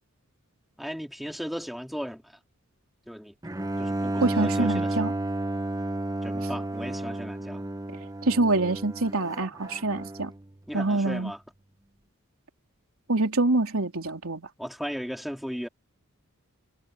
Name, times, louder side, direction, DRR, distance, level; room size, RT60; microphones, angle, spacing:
voice 1, 0.8-2.4 3.1-3.3 3.8-4.9 6.2-7.7 10.7-11.4 14.6-15.7, equal, ahead, 2.5 m, -36 dB
Bowed string instrument, 3.4-10.4, right 1 dB, 15° right, 0.8 m, -31 dB
voice 2, 4.2-5.1 8.2-10.3 10.7-11.3 13.1-14.5, right 2 dB, 75° right, 3.3 m, -25 dB
head